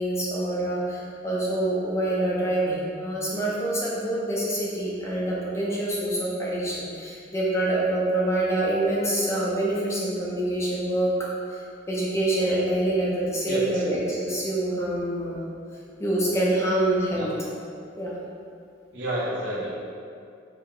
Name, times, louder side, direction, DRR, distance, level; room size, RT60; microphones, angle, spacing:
voice 1, 0.0-11.1 11.5-11.6 11.9-15.4 16.0-17.3 18.0-18.1, right 1 dB, 15° left, -6 dB, 0.4 m, -26 dB
voice 2, 13.5-13.8 17.1-17.3 18.9-19.7, right 1 dB, 60° right, -7 dB, 0.9 m, -29 dB
4.4 x 2.0 x 3.7 m, 2.4 s
head